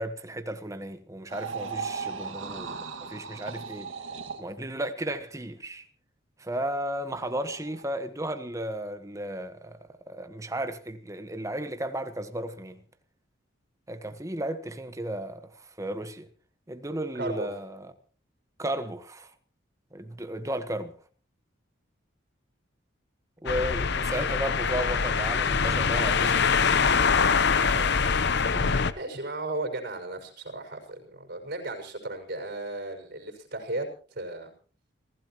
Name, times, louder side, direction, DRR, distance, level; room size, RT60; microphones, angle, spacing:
voice 1, 0.0-3.9 4.4-5.8 6.4-9.8 10.1-12.8 13.9-16.3 16.7-17.9 18.6-19.3 19.9-20.9 23.4-26.8 28.6-28.8, right 1 dB, 15° right, 1.3 m, -34 dB
sound 1, 1.3-4.5 7.1-7.8, right 5 dB, 75° right, 2.1 m, -37 dB
voice 2, 17.1-17.5 27.7-28.0 28.3-34.5, right 2 dB, 50° right, 6.0 m, -36 dB
sound 2, 23.5-28.9, left 5 dB, 60° left, 0.9 m, -24 dB
29.5 x 15.5 x 3.1 m
head